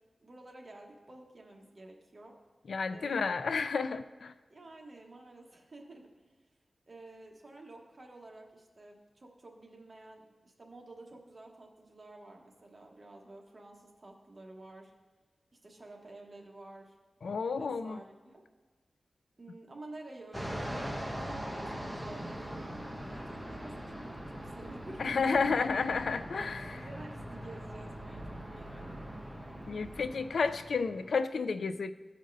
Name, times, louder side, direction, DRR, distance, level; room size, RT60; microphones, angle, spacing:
voice 1, 0.2-2.3 2.9-3.4 4.5-6.1 6.9-14.9 15.6-16.9 17.6-18.4 19.4-25.6 26.7-29.1, right 2 dB, 40° right, 0 dB, 1.2 m, -51 dB
voice 2, 2.7-4.3 17.2-18.0 25.0-26.8 29.7-31.9, left 5 dB, 90° left, 12 dB, 0.3 m, -31 dB
Fixed-wing aircraft airplane, 20.3-31.2, equal, ahead, 0.9 m, -41 dB
14.0 x 5.1 x 2.6 m, 1.3 s
wide cardioid pair, 95°, 0 cm